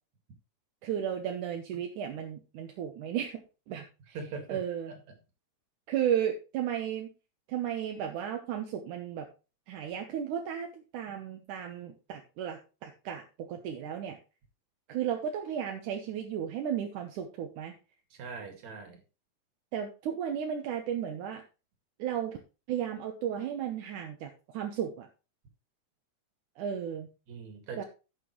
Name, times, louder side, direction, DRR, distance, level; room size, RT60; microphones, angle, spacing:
voice 1, 0.8-3.4 3.7-4.2 4.5-4.9 5.9-7.1 7.5-9.3 9.7-14.2 14.9-17.7 19.7-21.4 22.0-22.4 22.7-25.1 26.6-27.1 27.8-27.9, right 9 dB, 80° right, 3 dB, 2.6 m, -34 dB
voice 2, 4.1-4.6 4.9-5.0 18.1-19.0 27.3-27.8, right 4 dB, 65° right, 5 dB, 3.4 m, -41 dB
15.5 x 6.1 x 3.1 m, 0.31 s
omnidirectional pair, 3.5 m